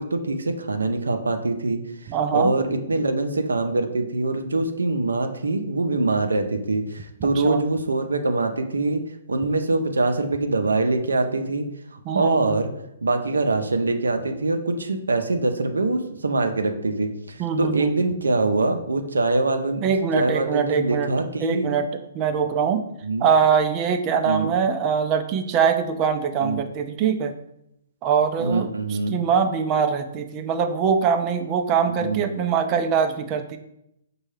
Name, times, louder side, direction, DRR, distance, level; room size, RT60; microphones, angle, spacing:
voice 1, 0.0-1.8 2.3-9.0 9.3-11.6 12.1-12.7 13.0-19.8 20.2-21.8 23.0-23.2 24.2-24.5 26.4-26.6 28.4-29.2 31.9-32.2, right 2 dB, 90° right, 6 dB, 0.5 m, -24 dB
voice 2, 2.1-2.5 7.2-7.7 12.1-12.6 17.4-17.9 19.8-21.1 21.4-21.9 22.1-22.8 23.2-27.3 28.0-28.7 29.1-33.6, right 6 dB, 30° right, 7 dB, 0.4 m, -23 dB
5.3 x 2.3 x 3.2 m, 0.81 s
hypercardioid pair, 135°, 0 cm